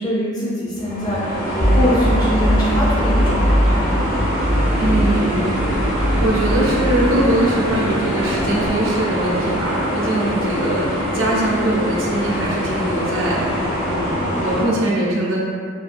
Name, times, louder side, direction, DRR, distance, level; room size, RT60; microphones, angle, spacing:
voice 1, 0.0-4.0, equal, 20° left, -7 dB, 0.4 m, -23 dB
sound 1, 0.7-14.6, equal, 80° left, 1.2 m, -23 dB
sound 2, 1.6-7.5, equal, 40° left, 0.8 m, -21 dB
voice 2, 4.8-13.6 13.9-15.4, right 1 dB, 85° right, -4 dB, 0.6 m, -22 dB
2.6 x 2.3 x 2.5 m, 2.3 s
head